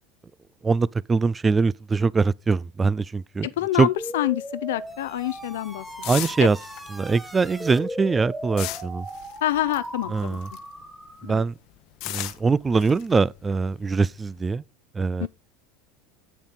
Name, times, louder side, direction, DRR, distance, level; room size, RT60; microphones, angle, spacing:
voice 1, 0.6-3.5 3.8-3.9 6.1-6.6 6.9-9.1 10.1-10.5 11.2-11.5 12.1-14.6 14.9-15.3, right 4 dB, 20° right, 0.4 m, -22 dB
voice 2, 3.4-6.5 9.4-10.4 11.2-11.5 15.2-15.3, left 14 dB, 85° left, 0.5 m, -27 dB
sound 1, 4.0-11.4, equal, 5° right, 2.8 m, -37 dB
sound 2, 4.8-10.8 11.1-14.5, left 15 dB, 65° left, 0.9 m, -38 dB
8.1 x 7.3 x 4.0 m
supercardioid pair, 100°, 0 cm